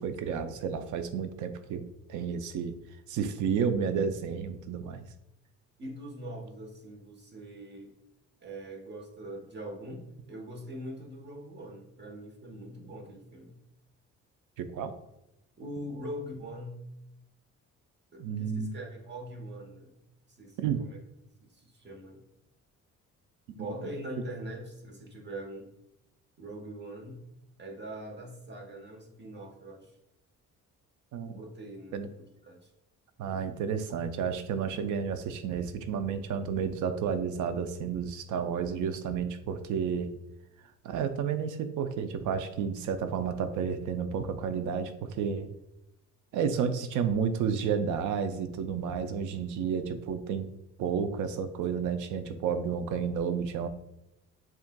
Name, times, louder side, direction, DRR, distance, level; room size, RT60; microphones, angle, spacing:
voice 1, 0.0-2.8 3.1-5.0 14.6-14.9 18.2-18.7 20.6-20.8 31.1-31.4 31.9-32.1 33.2-40.1 40.8-45.5 46.3-50.5 50.8-53.7, right 7 dB, 80° right, 10 dB, 0.5 m, -31 dB
voice 2, 5.8-7.9 8.4-13.6 15.6-16.8 18.1-20.0 20.3-21.0 21.4-22.2 23.5-25.7 26.4-27.2 27.6-29.9 31.2-32.1 32.4-32.7, right 1 dB, 35° right, 2 dB, 1.1 m, -42 dB
7.1 x 2.4 x 2.2 m, 0.87 s
cardioid pair, 90°, 30 cm